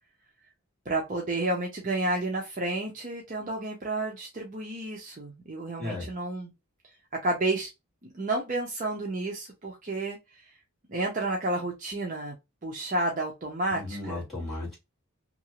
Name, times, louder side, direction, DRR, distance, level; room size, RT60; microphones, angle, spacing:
voice 1, 0.9-6.5 7.2-7.7 8.1-10.4 10.9-12.4 12.6-14.2, right 2 dB, 35° right, 0.6 m, -31 dB
voice 2, 5.8-6.1 13.7-14.8, left 2 dB, ahead, 1.8 m, -35 dB
2.8 x 2.6 x 2.9 m
head